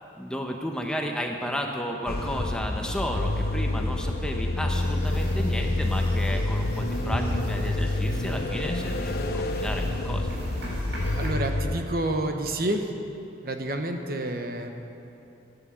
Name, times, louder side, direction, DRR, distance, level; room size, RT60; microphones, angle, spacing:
voice 1, 0.2-10.3, equal, 5° left, 1 dB, 0.9 m, -33 dB
sound 1, 2.1-11.8, left 2 dB, 55° left, 0.8 m, -28 dB
sound 2, 4.7-11.3, equal, 85° right, 4.4 m, -36 dB
voice 2, 11.1-12.9 13.4-14.7, right 1 dB, 50° right, 5 dB, 1.0 m, -29 dB
14.0 x 10.0 x 7.5 m, 2.8 s
head